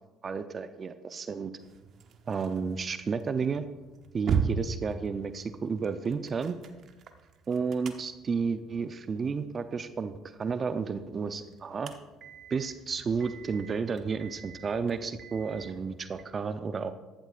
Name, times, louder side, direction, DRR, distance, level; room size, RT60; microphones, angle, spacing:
voice 1, 0.2-1.5 2.3-3.7 4.1-6.6 7.5-11.9 12.5-16.9, right 5 dB, 40° right, 10 dB, 0.6 m, -32 dB
sound 1, 1.6-16.2, right 6 dB, 55° right, 0.9 m, -39 dB
14.5 x 11.5 x 2.5 m, 1.2 s
hypercardioid pair, 65°, 0 cm